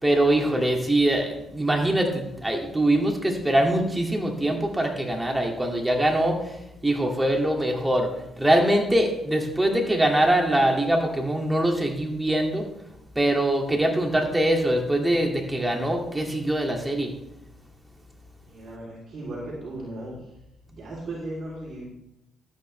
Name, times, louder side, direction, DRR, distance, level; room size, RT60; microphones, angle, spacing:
voice 1, 0.0-12.7 13.2-17.1, right 1 dB, 10° right, 1 dB, 2.3 m, -23 dB
voice 2, 18.4-20.3 20.7-21.8, right 1 dB, 55° right, -4 dB, 3.4 m, -36 dB
12.5 x 9.3 x 3.3 m, 0.86 s
cardioid pair, 90°, 0 cm